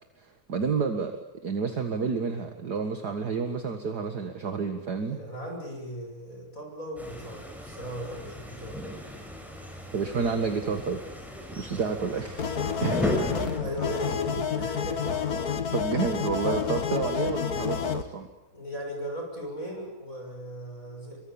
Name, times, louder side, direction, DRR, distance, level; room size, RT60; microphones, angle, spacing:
voice 1, 0.2-1.1 1.4-5.2 9.9-11.0 11.5-12.4 12.8-13.0 15.7-18.3, right 5 dB, 40° right, 6 dB, 1.7 m, -29 dB
voice 2, 5.1-8.8 13.6-15.2 18.5-21.2, equal, 25° left, 1 dB, 6.7 m, -37 dB
sound 1, 7.0-13.6, left 1 dB, ahead, 5.6 m, -35 dB
sound 2, 12.4-18.0, left 7 dB, 50° left, 1.2 m, -29 dB
25.5 x 24.0 x 8.9 m, 0.92 s
omnidirectional pair, 3.7 m